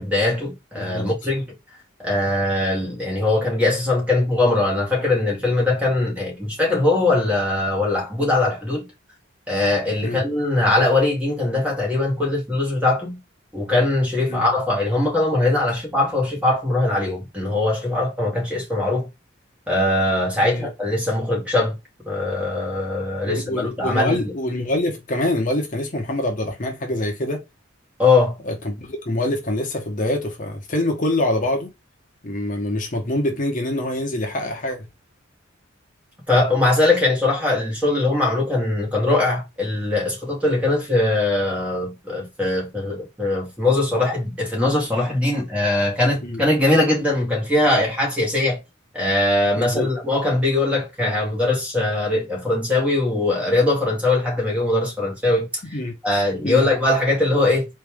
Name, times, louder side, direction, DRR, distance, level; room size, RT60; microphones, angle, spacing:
voice 1, 0.0-1.5 2.0-8.8 9.5-13.2 13.5-19.1 19.7-21.7 22.0-24.2 28.0-28.4 36.3-48.6 48.9-55.5 56.0-57.7, left 2 dB, 5° right, 1.8 m, -21 dB
voice 2, 0.8-1.1 10.0-10.3 14.3-14.4 20.4-20.7 23.2-27.4 28.4-31.7 32.2-34.9 46.2-46.4 49.6-49.9 55.7-56.7, left 1 dB, 40° left, 1.0 m, -25 dB
4.2 x 3.3 x 3.5 m
head